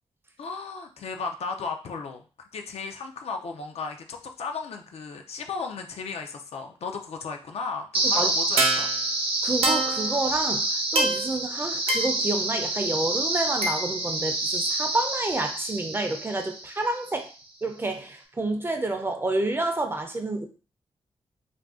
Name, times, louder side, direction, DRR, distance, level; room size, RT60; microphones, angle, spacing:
voice 1, 0.4-8.9, left 4 dB, 75° left, 0.4 m, -35 dB
sound 1, 7.9-17.0, right 2 dB, 60° right, 0.7 m, -26 dB
voice 2, 9.4-17.3 17.6-20.5, right 2 dB, 20° right, 0.5 m, -29 dB
2.5 x 2.3 x 3.5 m
wide cardioid pair, 110°, 11 cm